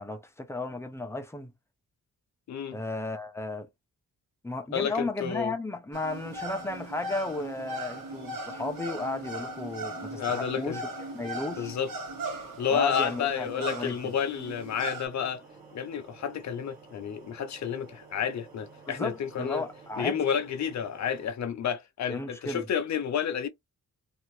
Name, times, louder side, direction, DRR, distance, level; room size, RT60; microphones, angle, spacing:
voice 1, 0.0-1.5 2.7-3.7 4.4-10.8 11.1-11.7 12.7-14.1 18.9-20.2 22.1-22.6, left 2 dB, 10° left, 0.4 m, -34 dB
voice 2, 2.5-2.8 4.7-5.5 10.1-10.8 11.6-11.9 12.6-15.4 15.7-19.6 20.0-23.5, left 8 dB, 55° left, 0.6 m, -30 dB
sound 1, 5.9-15.1, right 2 dB, 70° right, 1.2 m, -38 dB
sound 2, 6.1-21.3, right 4 dB, 25° right, 1.6 m, -52 dB
2.7 x 2.4 x 3.1 m
wide cardioid pair, 165°, 34 cm